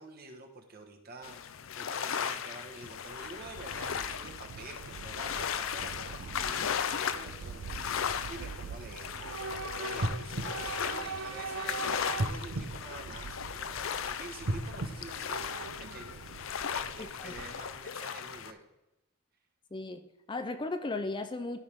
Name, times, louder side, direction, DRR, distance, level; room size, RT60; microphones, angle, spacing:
voice 1, 0.0-9.1 9.7-18.7, right 3 dB, 50° right, 3 dB, 1.3 m, -48 dB
sound 1, 1.2-18.5, left 8 dB, 75° left, 0.5 m, -37 dB
Train / Subway metro underground, 3.0-17.9, right 5 dB, 70° right, 0.4 m, -43 dB
sound 2, 10.0-11.6 12.1-13.7 14.4-16.1 16.6-16.7, right 1 dB, 90° right, 0.9 m, -36 dB
voice 2, 17.0-17.3 19.7-21.6, left 2 dB, 25° left, 9 dB, 0.4 m, -36 dB
13.0 x 5.6 x 3.5 m, 0.96 s
head